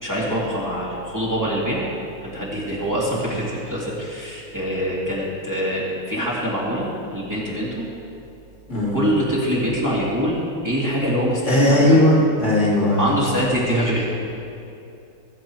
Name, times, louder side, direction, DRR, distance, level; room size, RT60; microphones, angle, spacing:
voice 1, 0.0-1.9 2.2-7.9 8.7-12.0 12.9-14.0, equal, 10° right, -6 dB, 2.3 m, -24 dB
voice 2, 8.7-9.0 11.5-13.1, left 1 dB, 50° left, -5 dB, 2.8 m, -17 dB
21.0 x 7.6 x 4.6 m, 2.6 s
omnidirectional pair, 1.6 m